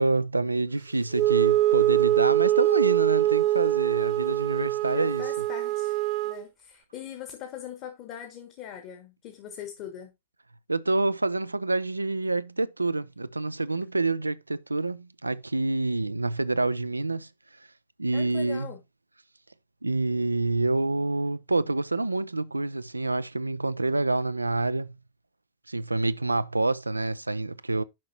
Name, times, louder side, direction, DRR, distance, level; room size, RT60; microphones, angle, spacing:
voice 1, 0.0-5.2 10.7-17.3 18.0-18.7 19.8-24.9 25.7-27.8, right 2 dB, 85° right, 0.4 m, -27 dB
Wind instrument woodwind instrument, 1.1-6.4, right 14 dB, 45° right, 1.0 m, -23 dB
voice 2, 4.9-6.0 6.2-10.1 18.1-18.8, left 10 dB, 40° left, 1.3 m, -41 dB
10.5 x 5.8 x 2.8 m
figure-of-eight pair, 90°, 0 cm